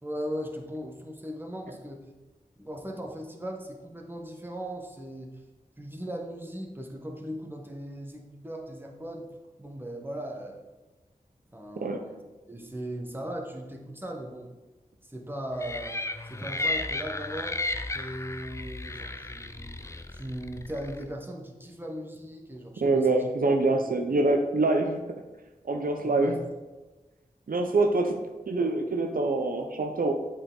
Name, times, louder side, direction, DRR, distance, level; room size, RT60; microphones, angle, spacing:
voice 1, 0.0-2.1 2.6-5.4 5.8-9.3 9.6-10.7 11.5-12.2 12.5-14.5 15.0-16.0 16.2-17.6 17.9-19.8 20.1-23.2 23.8-23.9 26.0-26.5, equal, 15° right, 1 dB, 1.1 m, -38 dB
voice 2, 11.8-12.1 22.8-25.2 25.6-26.4 27.5-30.1, right 2 dB, 75° right, 4 dB, 0.6 m, -25 dB
sound 1, 15.6-21.0, left 2 dB, 20° left, 0.4 m, -34 dB
7.8 x 4.3 x 3.8 m, 1.1 s
wide cardioid pair, 50°, 15 cm